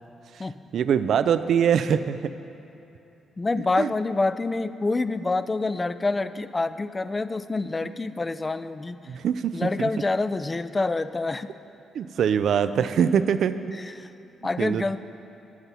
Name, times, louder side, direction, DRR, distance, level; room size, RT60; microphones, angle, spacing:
voice 1, 0.7-2.3 3.8-3.9 9.1-9.9 11.9-13.8 14.6-14.8, right 8 dB, 70° right, 12 dB, 0.3 m, -23 dB
voice 2, 3.4-9.0 9.5-11.5 13.8-14.1 14.4-15.0, left 3 dB, 25° left, 13 dB, 0.3 m, -27 dB
9.5 x 5.4 x 6.0 m, 2.9 s
cardioid pair, 75°, 0 cm